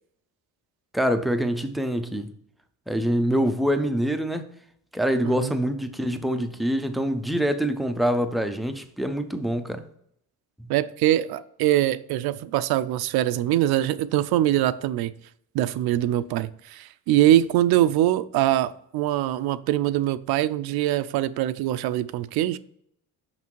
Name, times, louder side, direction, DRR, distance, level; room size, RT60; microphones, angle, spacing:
voice 1, 0.9-2.3 2.9-4.4 4.9-9.8 10.6-10.7, equal, ahead, 0.3 m, -25 dB
voice 2, 5.2-5.6 10.7-15.1 15.5-22.6, right 13 dB, 80° right, 0.5 m, -23 dB
6.1 x 5.9 x 4.6 m
cardioid pair, 175°, 37 cm